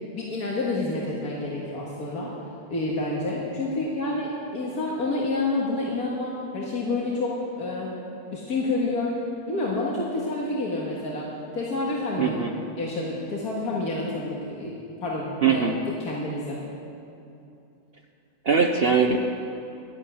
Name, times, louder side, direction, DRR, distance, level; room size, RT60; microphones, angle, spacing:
voice 1, 0.1-2.3 2.7-8.0 8.3-9.2 9.5-11.3 11.5-12.4 12.8-15.6 16.0-16.6, left 2 dB, 85° left, -4 dB, 2.2 m, -28 dB
voice 2, 12.2-12.5 15.4-15.7 18.4-19.2, right 6 dB, 50° right, 3 dB, 0.8 m, -21 dB
12.0 x 11.0 x 9.1 m, 2.7 s
omnidirectional pair, 1.6 m